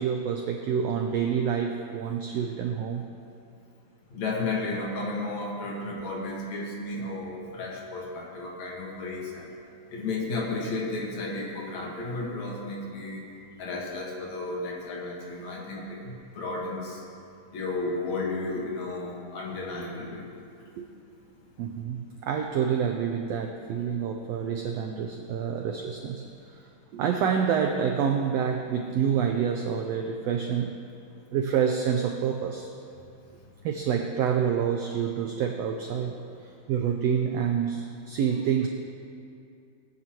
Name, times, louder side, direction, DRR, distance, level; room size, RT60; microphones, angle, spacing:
voice 1, 0.0-3.0 20.8-20.9 21.6-26.2 26.9-30.8 31.3-32.7 33.6-36.2 36.7-38.7, right 7 dB, 85° right, 3 dB, 1.4 m, -27 dB
voice 2, 4.1-9.5 9.9-13.3 13.6-17.0 17.5-20.3, left 2 dB, 65° left, -3 dB, 2.8 m, -33 dB
19.0 x 9.6 x 3.0 m, 2.4 s
omnidirectional pair, 3.6 m